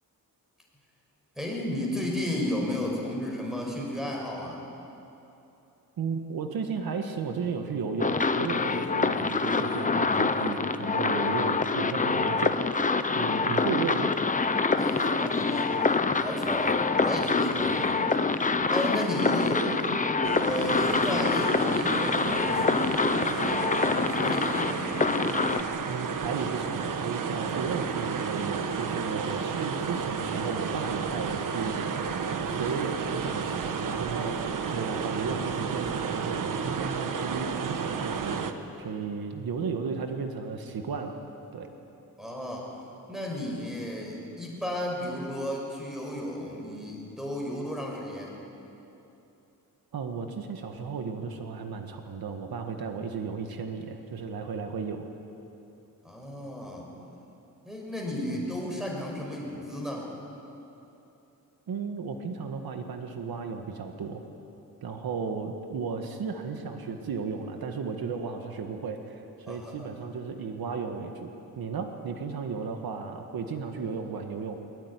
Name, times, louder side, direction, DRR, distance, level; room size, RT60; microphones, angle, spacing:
voice 1, 1.4-4.6 14.7-20.0 20.4-23.6 24.1-24.8 42.2-42.7 43.1-48.4 56.0-56.9 57.6-60.1 69.5-69.9, left 1 dB, ahead, -1 dB, 5.5 m, -33 dB
voice 2, 6.0-12.7 13.2-14.1 25.9-38.5 38.8-41.2 41.5-41.7 49.9-55.1 61.7-64.2 64.8-74.6, right 5 dB, 75° right, 4 dB, 1.9 m, -34 dB
sound 1, 8.0-25.6, left 4 dB, 20° left, 0.9 m, -26 dB
sound 2, 20.2-38.5, right 6 dB, 60° right, 1.5 m, -32 dB
22.0 x 22.0 x 9.9 m, 2.9 s
wide cardioid pair, 165°, 36 cm